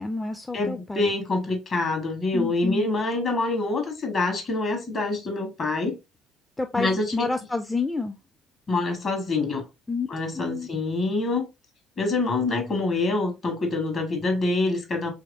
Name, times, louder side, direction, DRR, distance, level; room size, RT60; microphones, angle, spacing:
voice 1, 0.0-1.1 2.3-2.9 6.6-8.2 9.9-10.1 10.3-10.7, left 3 dB, 15° left, 0.4 m, -29 dB
voice 2, 0.5-6.0 6.8-7.3 8.7-9.6 10.1-11.4 12.0-15.1, left 3 dB, 45° left, 1.3 m, -26 dB
3.4 x 3.1 x 2.5 m
figure-of-eight pair, 55°, 0 cm